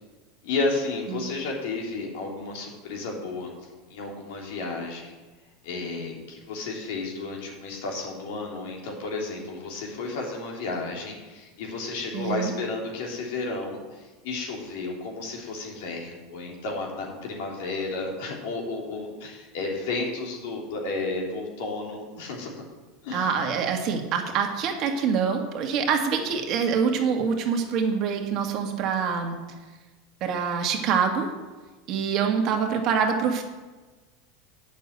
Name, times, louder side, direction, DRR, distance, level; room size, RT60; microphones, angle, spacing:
voice 1, 0.4-3.5 3.9-5.1 5.6-22.6 23.0-23.3, left 3 dB, 75° left, 0 dB, 3.4 m, -32 dB
voice 2, 12.1-12.5 23.1-29.4 30.2-31.3 31.9-33.4, right 6 dB, 45° right, 3 dB, 1.8 m, -25 dB
9.3 x 6.8 x 8.1 m, 1.3 s
supercardioid pair, 130°, 0 cm